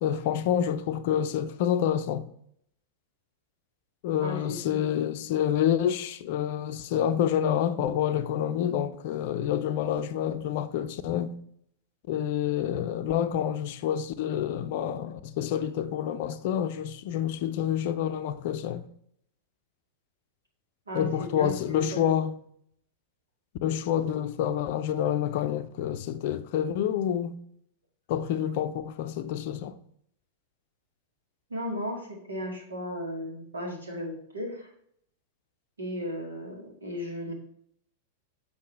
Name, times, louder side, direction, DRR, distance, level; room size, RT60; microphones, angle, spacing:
voice 1, 0.0-2.2 4.0-11.3 12.1-18.8 20.9-22.3 23.6-27.4 28.1-29.8, left 10 dB, 50° left, 0.5 m, -28 dB
voice 2, 4.2-4.9 20.9-22.1 31.5-34.7 35.8-37.3, equal, 75° right, 2.1 m, -36 dB
7.6 x 5.5 x 3.2 m
figure-of-eight pair, 95°, 0 cm